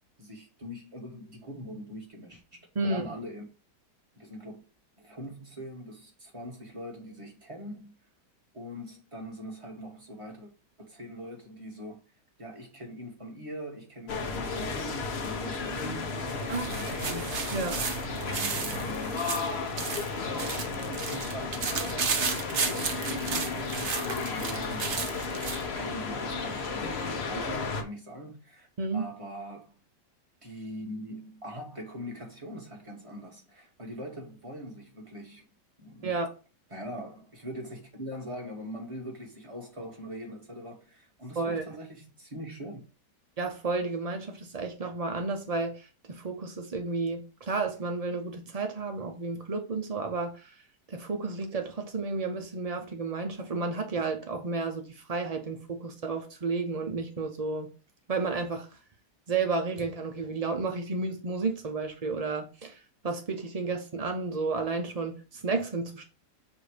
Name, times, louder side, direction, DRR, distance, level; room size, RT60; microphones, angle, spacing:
voice 1, 0.2-3.4 4.1-4.6 5.0-7.9 8.5-10.5 10.8-12.0 12.4-16.2 16.6-17.3 18.1-19.3 20.5-28.7 28.9-29.8 30.4-35.4 35.8-36.1 36.7-42.8, equal, 20° right, 1.5 m, -42 dB
voice 2, 2.8-3.1 16.5-16.8 17.1-17.2 17.5-17.9 28.8-29.0 36.0-36.3 41.4-41.7 43.4-50.6 50.9-57.7 58.1-58.7 59.3-62.8 63.0-66.1, right 3 dB, 75° right, 0.3 m, -32 dB
sound 1, 14.1-27.8, left 4 dB, 45° left, 0.9 m, -33 dB
sound 2, 16.2-25.7, right 5 dB, 50° right, 0.9 m, -34 dB
7.3 x 2.7 x 4.9 m
omnidirectional pair, 1.9 m